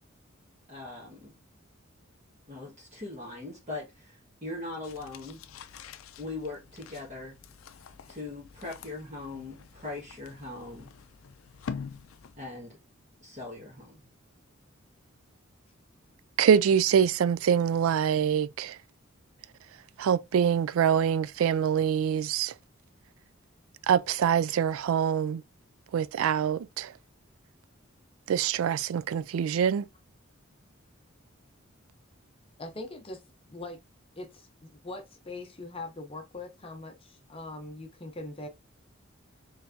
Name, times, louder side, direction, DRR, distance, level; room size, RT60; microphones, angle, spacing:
voice 1, 0.7-1.3 2.5-5.4 6.2-7.4 8.1-10.9 12.4-12.8 13.2-14.0, left 2 dB, 35° right, 1.5 m, -40 dB
sound 1, 4.8-12.5, left 6 dB, 90° left, 0.4 m, -45 dB
voice 2, 16.4-18.8 20.0-22.5 23.9-25.4 25.9-26.9 28.3-29.9, right 8 dB, 90° right, 0.3 m, -25 dB
voice 3, 32.6-33.2 33.5-33.8 34.2-34.5 34.8-38.5, left 2 dB, 30° left, 0.6 m, -41 dB
4.4 x 3.3 x 2.6 m
head